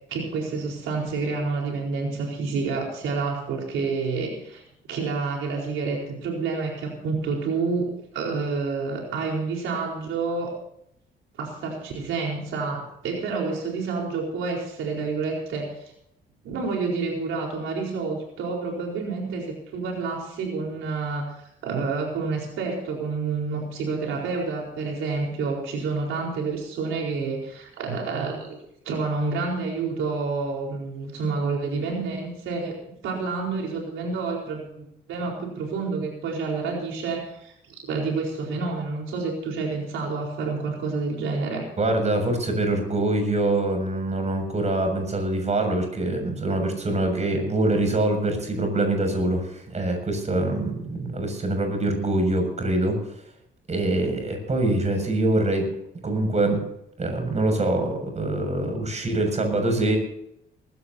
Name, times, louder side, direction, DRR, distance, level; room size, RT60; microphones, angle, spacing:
voice 1, 0.1-4.6 4.9-10.5 11.4-15.7 16.4-28.6 28.8-32.8 33.0-41.7 58.6-58.7, right 4 dB, 85° right, 0 dB, 4.5 m, -29 dB
voice 2, 41.8-53.0 53.7-55.7 56.0-56.6 57.0-60.0, right 2 dB, 35° right, 5 dB, 6.9 m, -24 dB
20.0 x 16.5 x 2.8 m, 0.76 s
cardioid pair, 90°, 20 cm